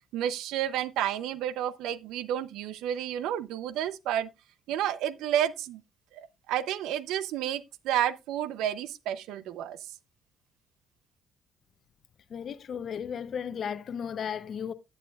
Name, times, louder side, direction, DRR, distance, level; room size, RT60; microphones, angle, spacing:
voice 1, 0.1-4.3 4.7-5.8 6.1-9.8, right 11 dB, 80° right, 0.6 m, -31 dB
voice 2, 12.3-14.7, left 7 dB, 55° left, 0.6 m, -35 dB
10.0 x 8.6 x 2.3 m
supercardioid pair, 70°, 0 cm